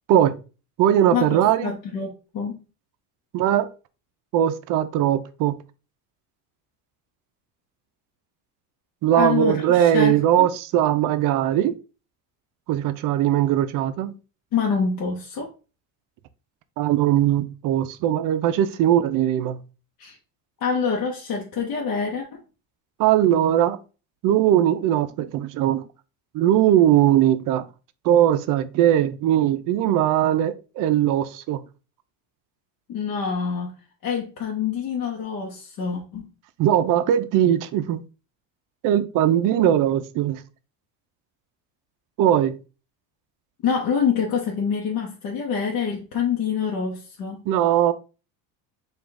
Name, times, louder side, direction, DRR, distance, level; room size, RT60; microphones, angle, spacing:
voice 1, 0.8-1.8 3.3-3.7 4.3-5.6 9.0-11.7 12.7-14.2 16.8-19.6 23.0-23.8 24.2-25.9 26.3-27.7 28.0-31.6 36.6-38.0 38.8-40.4 42.2-42.6 47.5-47.9, right 11 dB, 50° right, 0.5 m, -20 dB
voice 2, 1.6-2.6 9.1-10.5 14.5-15.5 20.0-20.2 20.6-22.4 32.9-33.7 34.0-36.3 43.6-47.4, left 6 dB, 50° left, 1.0 m, -26 dB
4.9 x 2.5 x 3.6 m
cardioid pair, 155°, 43 cm